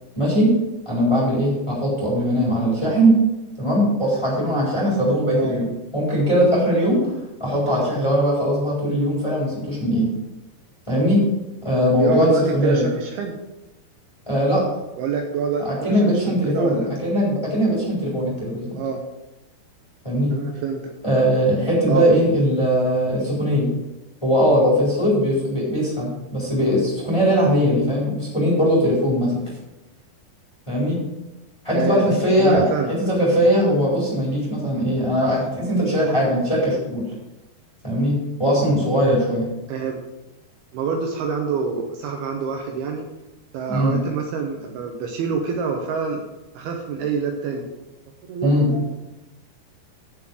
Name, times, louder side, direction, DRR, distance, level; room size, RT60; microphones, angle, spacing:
voice 1, 0.1-0.5 0.8-3.1 3.6-5.7 5.9-7.1 7.4-10.1 10.9-11.2 11.6-12.9 14.3-14.6 15.6-18.7 20.0-20.3 21.0-23.7 24.2-29.4 30.7-31.0 31.6-37.0 37.8-39.5 43.7-43.9 48.4-48.7, equal, 5° left, -5 dB, 3.7 m, -20 dB
voice 2, 12.0-13.4 15.0-16.9 18.7-19.0 20.3-20.9 21.9-22.1 31.7-32.1 32.4-32.9 39.7-40.0 40.7-43.1 43.5-46.2 46.5-47.6 48.3-48.9, right 5 dB, 75° right, 2 dB, 2.7 m, -26 dB
8.9 x 7.3 x 6.3 m, 1.0 s
omnidirectional pair, 5.0 m